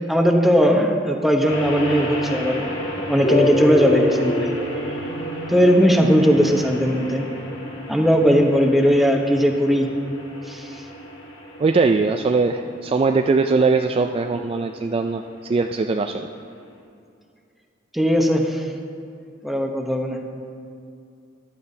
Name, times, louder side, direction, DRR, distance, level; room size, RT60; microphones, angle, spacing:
voice 1, 0.1-2.8 3.1-4.5 5.5-7.2 7.9-9.9 10.5-10.7 17.9-18.6 19.4-20.2, equal, ahead, 2 dB, 0.9 m, -18 dB
sound 1, 1.4-16.7, equal, 85° left, 1.8 m, -34 dB
sound 2, 3.2-7.8, left 1 dB, 60° left, 1.7 m, -26 dB
voice 2, 11.6-16.3, right 4 dB, 30° right, 5 dB, 0.3 m, -21 dB
15.5 x 11.5 x 2.7 m, 2.4 s
head